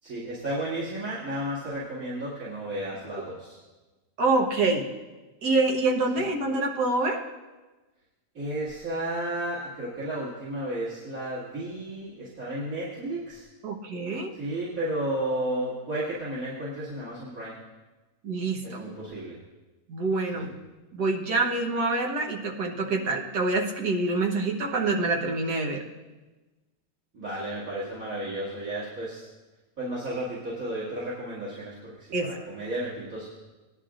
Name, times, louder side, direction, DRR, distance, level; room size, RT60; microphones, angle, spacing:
voice 1, 0.0-3.6 8.3-13.5 14.3-17.5 18.6-19.4 20.3-20.5 27.1-29.2 29.8-33.3, right 1 dB, 55° right, -8 dB, 2.8 m, -33 dB
voice 2, 4.2-4.9 5.4-7.2 13.6-14.3 18.2-18.8 19.9-20.5 20.9-25.8 32.1-32.3, right 3 dB, 75° right, 1 dB, 1.8 m, -26 dB
18.5 x 11.0 x 2.5 m, 1.2 s
omnidirectional pair, 1.8 m